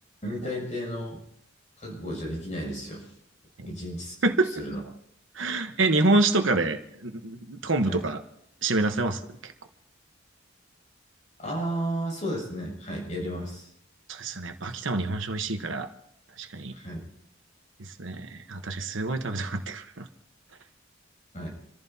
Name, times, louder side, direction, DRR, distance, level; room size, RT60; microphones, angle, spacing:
voice 1, 0.2-1.2 1.8-3.1 3.7-4.2 4.5-4.8 7.8-8.0 11.4-13.7 16.7-17.1 21.3-21.5, equal, 40° left, -2 dB, 7.3 m, -33 dB
voice 2, 4.2-4.5 5.3-8.2 8.6-9.5 14.1-15.9 16.4-16.7 17.8-20.1, right 2 dB, 80° right, 6 dB, 1.2 m, -27 dB
28.0 x 15.0 x 2.9 m, 0.74 s
head